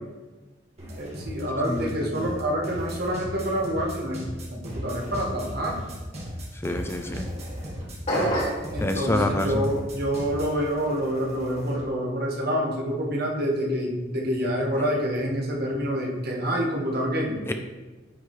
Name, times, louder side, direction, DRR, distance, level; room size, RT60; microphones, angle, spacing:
sound 1, 0.8-11.9, equal, 35° right, 1.8 m, -37 dB
voice 1, 1.0-4.2 4.5-5.8 8.7-17.4, equal, 60° right, -1 dB, 1.5 m, -27 dB
voice 2, 6.6-7.2 8.8-9.7 17.5-17.6, left 1 dB, 15° left, 6 dB, 0.4 m, -26 dB
sound 2, 8.1-8.7, equal, 40° left, 2.5 m, -25 dB
9.8 x 4.9 x 3.2 m, 1.2 s
head